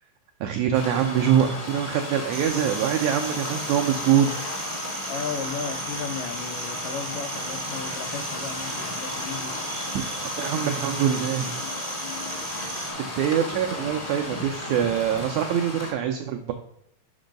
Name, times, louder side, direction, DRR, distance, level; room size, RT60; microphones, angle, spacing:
voice 1, 0.4-4.3 10.2-11.5 13.0-16.5, right 9 dB, 85° right, 5 dB, 1.6 m, -24 dB
sound 1, 0.7-15.9, left 2 dB, 45° left, 0.6 m, -34 dB
sound 2, 2.3-12.9, right 3 dB, 55° right, 0.8 m, -36 dB
voice 2, 5.1-9.5, left 6 dB, 80° left, 9 dB, 2.1 m, -35 dB
5.3 x 5.3 x 5.1 m, 0.72 s
omnidirectional pair, 3.8 m